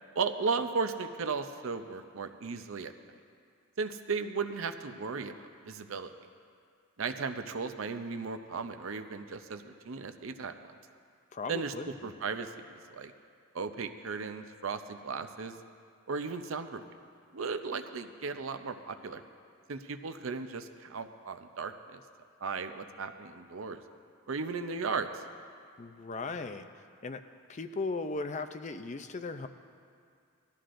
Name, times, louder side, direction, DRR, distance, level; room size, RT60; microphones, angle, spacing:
voice 1, 0.2-2.9 3.8-5.3 5.7-6.1 7.0-10.7 11.5-11.7 12.0-13.1 13.5-15.6 16.1-16.8 17.3-19.2 19.7-22.0 22.4-23.8 24.3-25.2, right 4 dB, 70° right, 8 dB, 0.6 m, -36 dB
voice 2, 11.3-12.1 25.8-26.7 27.0-27.2 27.5-29.5, left 3 dB, 35° left, 9 dB, 0.4 m, -37 dB
19.0 x 13.0 x 2.6 m, 2.3 s
head